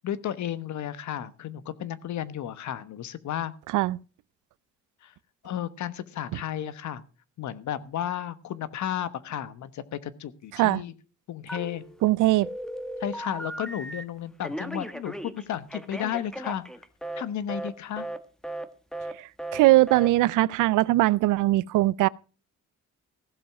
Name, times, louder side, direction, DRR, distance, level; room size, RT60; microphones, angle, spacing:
voice 1, 0.0-3.5 5.0-5.1 5.4-7.0 7.4-10.9 11.3-11.8 13.0-16.6 17.2-18.1, left 10 dB, 70° left, 1.2 m, -33 dB
Telephone, 11.5-12.1 12.4-14.0 14.4-17.2 17.5-17.7 18.0-18.2 18.4-18.7 18.9-19.1 19.4-19.6 19.9-20.1, right 1 dB, ahead, 1.4 m, -36 dB
voice 2, 12.0-12.5 19.2-22.1, right 17 dB, 85° right, 0.5 m, -21 dB
16.0 x 7.1 x 6.0 m
cardioid pair, 90°, 30 cm